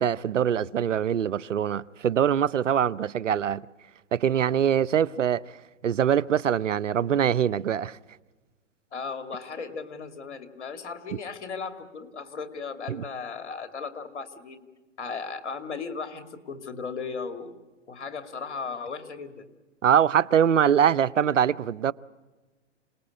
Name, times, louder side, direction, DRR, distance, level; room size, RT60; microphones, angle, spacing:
voice 1, 0.0-3.6 4.1-5.4 5.8-8.0 12.9-13.0 19.8-21.9, right 9 dB, 85° right, 0.7 m, -23 dB
voice 2, 8.9-14.7 15.0-17.6 17.9-19.5, left 5 dB, 70° left, 2.6 m, -36 dB
27.5 x 19.0 x 8.7 m
hypercardioid pair, 130°, 36 cm